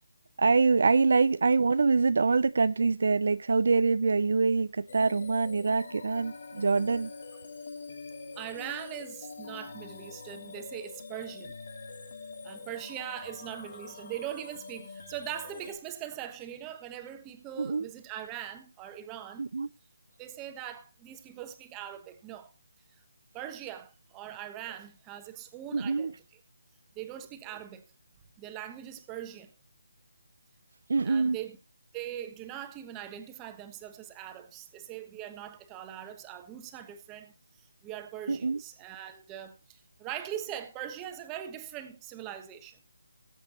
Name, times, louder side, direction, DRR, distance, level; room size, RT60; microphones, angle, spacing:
voice 1, 0.4-7.1 17.6-17.9 19.4-19.7 25.7-26.1 30.9-31.4 38.3-38.6, right 4 dB, 60° right, 0.5 m, -25 dB
sound 1, 4.9-15.8, left 4 dB, 55° left, 2.9 m, -45 dB
voice 2, 8.3-11.5 12.4-19.5 20.2-22.5 23.3-26.4 26.9-27.8 28.4-29.5 31.0-31.6 31.9-37.3 37.8-42.8, right 11 dB, 10° right, 1.2 m, -41 dB
19.0 x 8.1 x 3.0 m
figure-of-eight pair, 170°, 0 cm